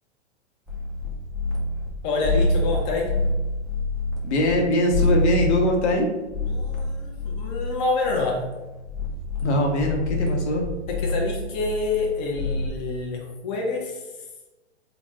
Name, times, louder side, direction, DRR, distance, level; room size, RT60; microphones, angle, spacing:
sound 1, 0.7-1.9 2.2-4.5 4.9-12.7, left 2 dB, ahead, 0.4 m, -27 dB
voice 1, 2.0-3.1 6.5-8.4 10.9-14.1, left 3 dB, 40° left, -1 dB, 0.6 m, -27 dB
voice 2, 4.2-6.1 9.4-10.6, left 1 dB, 70° left, 1 dB, 1.0 m, -22 dB
4.0 x 2.1 x 3.5 m, 1.1 s
hypercardioid pair, 130°, 35 cm